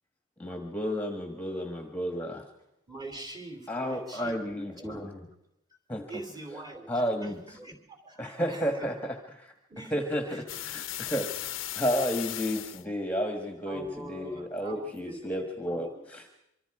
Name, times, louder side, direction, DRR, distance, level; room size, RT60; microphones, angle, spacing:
voice 1, 0.4-2.4 3.7-5.2 5.9-6.0 6.9-7.4 8.2-9.5 9.9-16.3, equal, 10° left, 4 dB, 1.5 m, -32 dB
voice 2, 2.9-5.0 6.1-8.9 9.7-10.0 10.3-10.6 13.6-16.0, right 2 dB, 20° right, 5 dB, 3.2 m, -44 dB
sound 1, 10.5-12.8, left 14 dB, 75° left, 0.7 m, -36 dB
25.5 x 24.5 x 4.9 m, 0.84 s
head